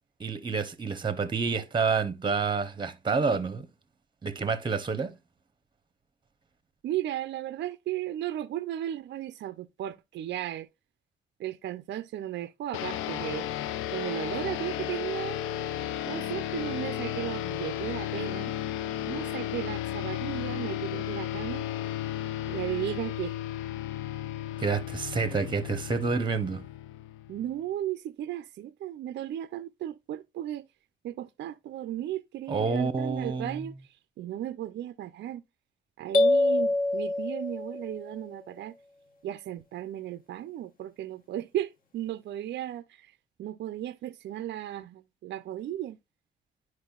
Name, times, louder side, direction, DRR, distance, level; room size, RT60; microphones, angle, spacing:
voice 1, 0.2-3.7 4.2-5.1 24.6-26.6 32.5-33.6, right 4 dB, 25° right, 0.8 m, -28 dB
voice 2, 6.8-10.7 11.4-13.5 13.9-15.4 16.1-18.5 19.1-21.6 22.5-23.3 27.3-30.7 31.0-35.4 36.0-38.7 39.2-43.1 43.4-46.0, right 12 dB, 60° right, 0.4 m, -35 dB
sound 1, 12.7-27.5, left 11 dB, 90° left, 0.4 m, -34 dB
sound 2, 36.1-38.0, left 2 dB, 45° left, 1.0 m, -25 dB
10.0 x 4.7 x 2.3 m
cardioid pair, 90°, 20 cm